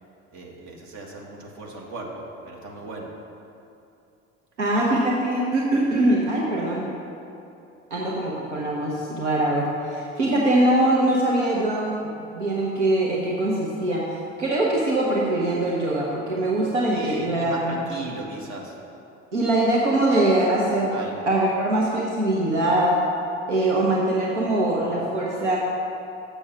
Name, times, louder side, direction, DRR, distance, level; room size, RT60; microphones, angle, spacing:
voice 1, 0.3-3.1 16.9-18.8 20.9-21.3, right 2 dB, 55° right, -1 dB, 1.7 m, -37 dB
voice 2, 4.6-6.8 7.9-11.9 12.3-14.0 14.4-17.8 19.3-21.0 21.3-23.0 23.5-25.6, right 1 dB, 85° right, -4 dB, 0.9 m, -22 dB
7.1 x 7.0 x 6.1 m, 2.7 s
hypercardioid pair, 60°, 34 cm